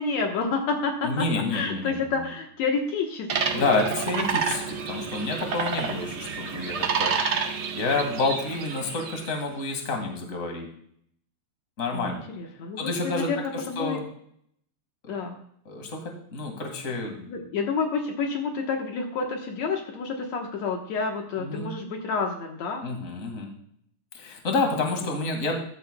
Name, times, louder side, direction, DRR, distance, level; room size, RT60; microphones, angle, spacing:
voice 1, 0.0-3.7 11.9-14.0 15.1-15.4 17.3-22.8, left 4 dB, 70° left, 2 dB, 2.4 m, -29 dB
voice 2, 1.0-2.0 3.5-7.1 7.7-10.7 11.8-12.2 12.8-14.0 15.0-15.2 15.7-17.3 21.4-21.7 22.8-23.5 24.1-25.6, left 3 dB, 30° left, 3 dB, 2.1 m, -29 dB
sound 1, 3.3-9.4, right 6 dB, 60° right, 1.0 m, -29 dB
14.0 x 13.5 x 2.3 m, 0.67 s
omnidirectional pair, 3.4 m